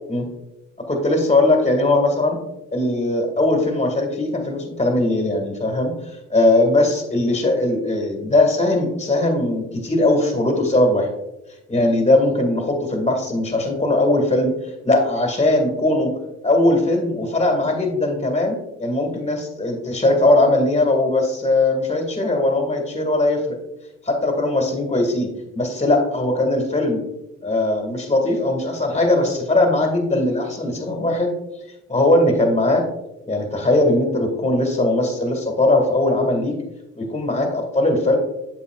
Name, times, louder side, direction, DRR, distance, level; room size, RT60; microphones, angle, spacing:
voice 1, 0.9-2.4 2.7-5.9 6.3-11.1 11.7-14.5 14.8-16.1 16.4-23.6 24.0-27.0 27.4-31.3 31.9-32.8 33.3-36.6 37.0-38.2, left 2 dB, 20° left, 3 dB, 2.0 m, -19 dB
8.3 x 7.2 x 2.4 m, 0.93 s
cardioid pair, 90°, 30 cm